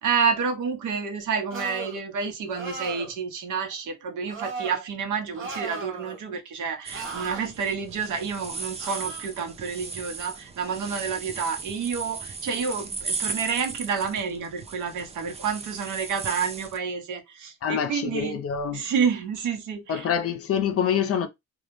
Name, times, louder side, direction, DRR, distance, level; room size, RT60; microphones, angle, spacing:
voice 1, 0.0-18.4 18.7-20.1, right 6 dB, 75° right, 0.8 m, -29 dB
sound 1, 1.5-2.0 2.5-3.1 4.3-4.8 5.3-6.2 6.9-7.4 8.8-9.3, right 4 dB, 45° right, 0.9 m, -36 dB
sound 2, 6.9-16.8, right 4 dB, 20° right, 0.3 m, -37 dB
voice 2, 17.6-18.9 19.9-21.3, left 8 dB, 50° left, 0.5 m, -26 dB
2.3 x 2.0 x 3.0 m
cardioid pair, 90°, 30 cm